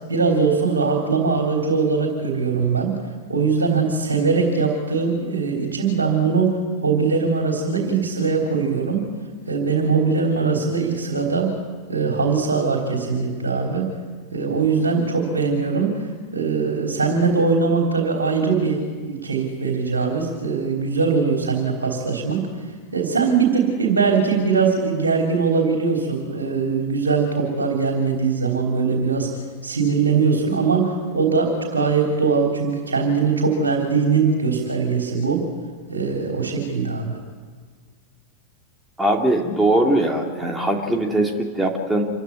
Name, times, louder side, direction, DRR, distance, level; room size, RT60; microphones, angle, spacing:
voice 1, 0.1-3.0 3.3-9.0 9.5-11.5 11.9-13.9 14.3-29.3 29.6-35.4 35.9-37.2, right 5 dB, 75° right, 1 dB, 3.4 m, -21 dB
voice 2, 39.0-42.1, right 1 dB, 5° right, 1 dB, 2.5 m, -21 dB
26.5 x 15.0 x 9.5 m, 1.6 s
figure-of-eight pair, 90°, 0 cm